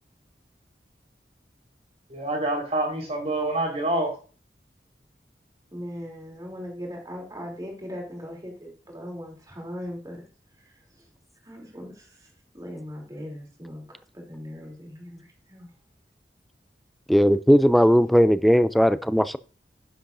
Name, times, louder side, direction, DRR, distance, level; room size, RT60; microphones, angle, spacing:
voice 1, 2.1-4.1, right 2 dB, 35° right, 4.4 m, -26 dB
voice 2, 5.7-10.2 10.6-11.1 11.4-15.7, equal, 20° right, 3.4 m, -39 dB
voice 3, 17.1-19.4, equal, ahead, 0.4 m, -18 dB
10.5 x 10.5 x 2.7 m
head